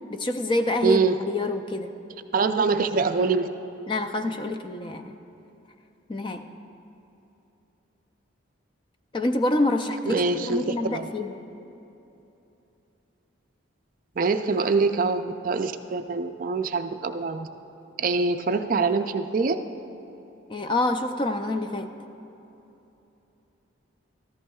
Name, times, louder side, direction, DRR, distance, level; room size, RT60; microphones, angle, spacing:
voice 1, 0.1-1.9 3.9-5.1 6.1-6.5 9.1-11.3 20.5-21.9, left 2 dB, 25° left, 8 dB, 0.4 m, -27 dB
voice 2, 0.8-1.2 2.3-3.5 10.1-11.1 14.2-17.5 18.0-19.6, right 4 dB, 45° right, 8 dB, 0.4 m, -24 dB
14.0 x 13.5 x 2.3 m, 3.0 s
head